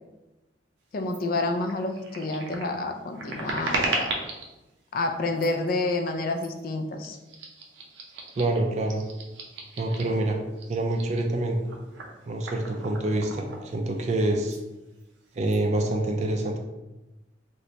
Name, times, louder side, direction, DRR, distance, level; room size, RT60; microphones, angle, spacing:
voice 1, 0.9-4.2 4.9-7.2, left 2 dB, 50° left, 5 dB, 0.3 m, -29 dB
sound 1, 1.1-1.2 1.6-4.5 5.3-5.7 6.4-6.6 7.0-10.2 10.5-14.2 14.4-14.6 14.9-15.6, right 3 dB, 80° right, 0.6 m, -36 dB
voice 2, 8.4-9.0 9.8-10.4 10.7-11.6 12.3-14.6 15.4-16.6, right 2 dB, 40° right, 3 dB, 0.4 m, -26 dB
3.2 x 3.0 x 2.8 m, 1.1 s
head